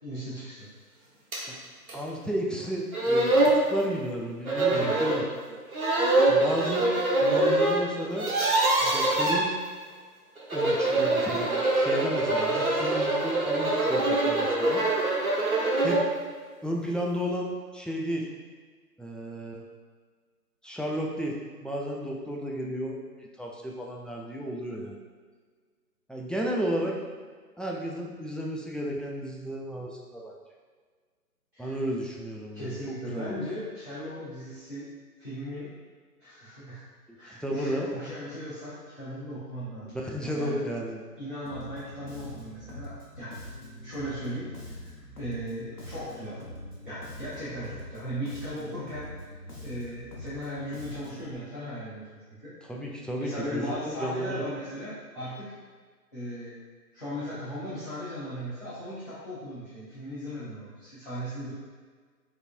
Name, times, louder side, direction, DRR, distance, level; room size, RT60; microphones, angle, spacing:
voice 1, 0.0-0.7 4.7-5.0 31.5-31.8 32.5-34.9 35.2-35.7 36.2-36.8 37.1-40.6 41.2-43.3 43.8-44.9 45.2-46.4 46.8-49.1 49.6-52.1 52.4-52.5 53.2-55.5 56.1-56.5 56.9-61.5, equal, 30° left, -14 dB, 0.9 m, -37 dB
sound 1, 1.3-1.4 1.9-2.0 2.6-2.7 2.9-3.6 4.5-5.2 5.7-7.8 8.1-9.4 10.4-16.1, right 2 dB, 60° right, 1.1 m, -24 dB
voice 2, 1.9-5.6 6.3-6.9 7.2-8.3 8.8-9.5 10.5-14.9 15.8-16.0 16.6-18.2 19.0-19.6 20.6-21.3 21.6-25.0 26.1-27.0 27.6-30.3 31.6-33.4 37.3-37.9 39.8-41.0 52.6-54.4, equal, ahead, -2 dB, 0.3 m, -33 dB
Bass guitar, 41.5-51.3, left 1 dB, 65° left, 1.1 m, -43 dB
4.9 x 3.1 x 2.5 m, 1.5 s
figure-of-eight pair, 180°, 49 cm